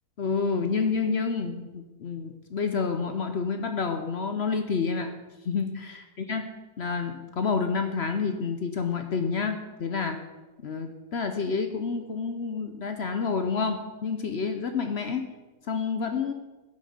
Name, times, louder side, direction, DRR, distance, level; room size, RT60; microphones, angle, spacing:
voice 1, 0.2-5.1 5.4-6.5 6.8-10.2 10.6-15.3 15.7-16.3, left 5 dB, 55° left, 7 dB, 0.8 m, -29 dB
9.4 x 6.4 x 6.6 m, 1.1 s
omnidirectional pair, 1.7 m